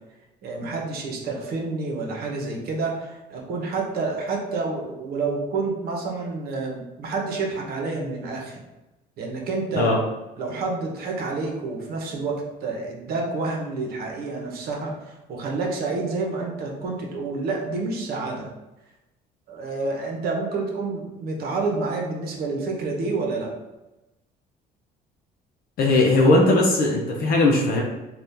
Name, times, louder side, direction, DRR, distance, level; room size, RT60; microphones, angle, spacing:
voice 1, 0.4-8.6 9.2-9.9 10.4-18.5 19.5-23.5, right 3 dB, 65° right, 0 dB, 0.8 m, -29 dB
voice 2, 25.8-27.8, left 2 dB, 60° left, -2 dB, 0.6 m, -18 dB
2.7 x 2.4 x 3.5 m, 1.0 s
cardioid pair, 110°, 17 cm